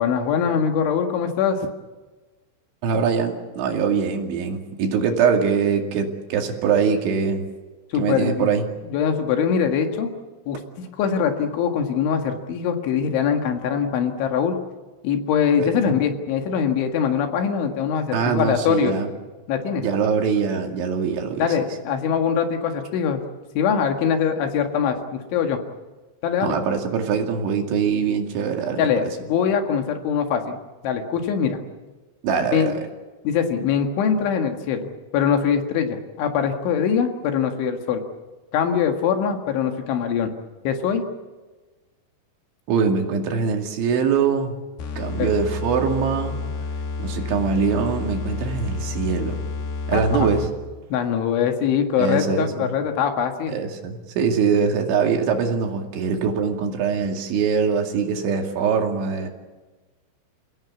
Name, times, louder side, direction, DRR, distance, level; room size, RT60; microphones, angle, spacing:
voice 1, 0.0-1.7 7.9-8.5 8.9-10.1 10.5-14.6 15.0-18.9 19.5-19.8 21.4-23.2 23.6-25.6 26.2-26.6 28.8-30.6 30.8-31.6 32.5-32.7 33.2-38.0 38.5-40.3 40.7-41.0 45.2-45.3 49.9-50.3 50.9-53.6, left 7 dB, 75° left, 5 dB, 4.2 m, -22 dB
voice 2, 2.8-7.5 8.0-8.6 15.6-15.9 18.1-19.1 19.8-21.5 26.4-29.1 32.2-32.8 42.7-44.5 45.0-46.4 47.0-49.4 49.9-50.5 52.0-52.7 53.5-59.3, right 6 dB, 70° right, 3 dB, 4.7 m, -23 dB
sound 1, 44.8-50.7, left 4 dB, 55° left, 4.3 m, -30 dB
29.0 x 17.0 x 8.4 m, 1.3 s
omnidirectional pair, 5.7 m